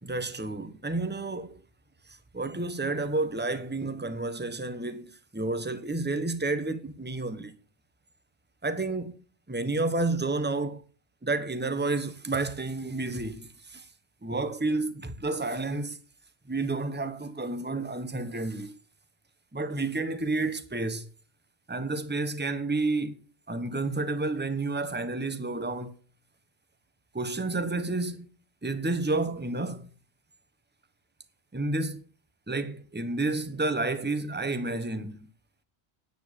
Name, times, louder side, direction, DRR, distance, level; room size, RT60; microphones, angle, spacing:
voice 1, 0.0-1.6 2.1-7.6 8.6-9.2 9.5-10.8 11.2-13.9 14.2-16.0 16.5-18.8 19.5-21.1 21.7-23.1 23.5-25.9 27.1-28.3 28.6-29.9 31.5-32.0 32.5-35.3, right 2 dB, 10° right, 1.1 m, -30 dB
9.9 x 9.6 x 6.7 m
omnidirectional pair, 1.1 m